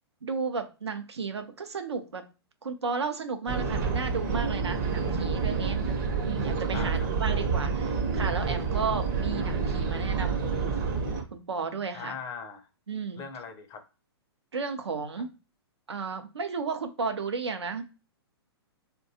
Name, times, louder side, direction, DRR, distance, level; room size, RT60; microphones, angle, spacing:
voice 1, 0.2-2.2 2.6-5.8 6.2-10.7 11.3-12.2 12.9-13.2 14.5-15.3 15.9-17.8, right 5 dB, 85° right, 7 dB, 0.5 m, -33 dB
sound 1, 3.5-11.2, right 5 dB, 45° right, 0.6 m, -28 dB
voice 2, 6.7-7.1 11.9-12.7 13.2-13.8, left 6 dB, 25° left, 7 dB, 0.5 m, -40 dB
2.5 x 2.2 x 2.7 m, 0.32 s
hypercardioid pair, 115°, 14 cm